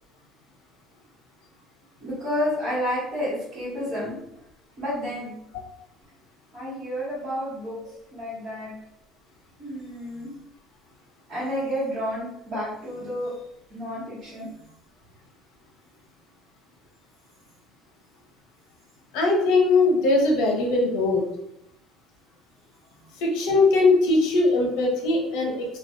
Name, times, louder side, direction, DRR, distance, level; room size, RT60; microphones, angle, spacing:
voice 1, 2.0-4.2 4.8-5.3 6.5-7.8 8.1-8.7 9.6-10.3 11.3-13.3 13.7-14.5, equal, 30° right, -14 dB, 1.2 m, -30 dB
voice 2, 19.1-21.2 23.2-25.7, left 3 dB, 70° left, 0 dB, 0.7 m, -20 dB
2.5 x 2.3 x 2.3 m, 0.78 s
cardioid pair, 175°, 0 cm